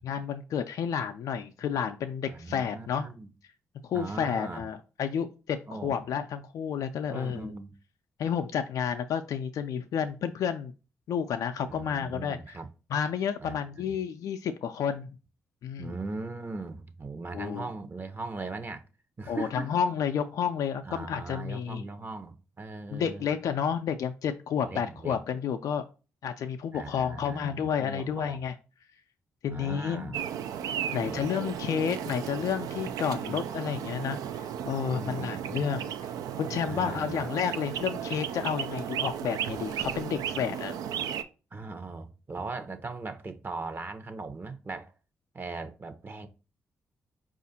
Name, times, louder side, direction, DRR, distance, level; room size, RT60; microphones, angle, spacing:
voice 1, 0.0-3.1 3.8-5.6 5.8-7.5 8.2-10.7 11.1-12.6 12.9-15.1 15.6-15.9 17.3-17.7 19.3-21.8 22.9-25.8 26.2-28.5 29.4-30.2 30.9-35.9 36.4-40.8, left 7 dB, 65° left, 0.4 m, -31 dB
voice 2, 2.3-3.3 3.9-4.6 5.7-6.0 7.1-7.7 11.7-12.7 13.4-14.0 15.8-18.8 19.2-19.7 20.8-23.3 24.6-25.2 26.7-28.4 29.5-30.2 31.0-31.3 32.9-33.4 34.9-35.7 36.7-37.2 41.5-44.9 45.3-46.3, right 3 dB, 35° right, 0.8 m, -39 dB
sound 1, 30.1-41.2, right 9 dB, 75° right, 0.4 m, -35 dB
4.8 x 2.4 x 4.1 m
hypercardioid pair, 45°, 6 cm